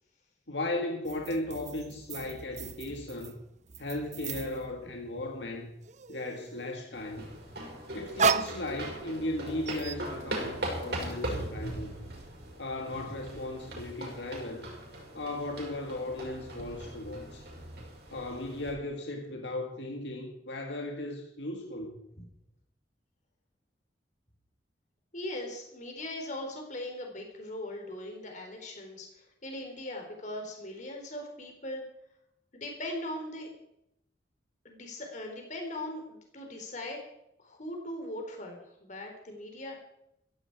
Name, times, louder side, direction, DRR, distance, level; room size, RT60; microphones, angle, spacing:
voice 1, 0.5-3.4 3.8-5.7 6.1-7.3 7.9-12.0 12.6-14.7 15.1-17.5 18.1-22.0, left 1 dB, 75° left, 2 dB, 2.0 m, -36 dB
sound 1, 1.0-5.3 5.6-6.8 7.6-9.3 9.7-10.0, right 5 dB, 40° right, 0.7 m, -34 dB
sound 2, 6.9-18.7, right 1 dB, 65° right, 5.9 m, -40 dB
voice 2, 25.1-31.8 32.5-33.5 34.6-37.0 37.4-39.8, left 1 dB, 45° left, 2 dB, 4.1 m, -40 dB
15.5 x 15.5 x 4.9 m, 0.82 s
head